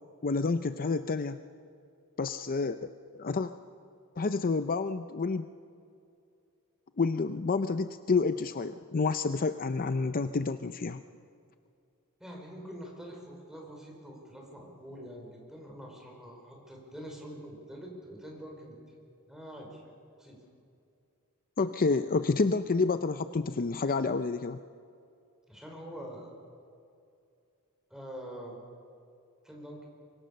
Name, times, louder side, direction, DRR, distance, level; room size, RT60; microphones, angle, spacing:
voice 1, 0.2-1.4 2.2-2.8 3.1-3.5 4.2-5.5 7.0-11.0 21.6-24.6, left 4 dB, 40° left, 10 dB, 0.5 m, -29 dB
voice 2, 12.2-18.7 19.3-19.8 20.2-20.4 25.5-26.3 27.9-28.6 29.4-29.9, equal, 5° right, 0 dB, 5.3 m, -45 dB
25.0 x 23.5 x 6.8 m, 2.5 s
head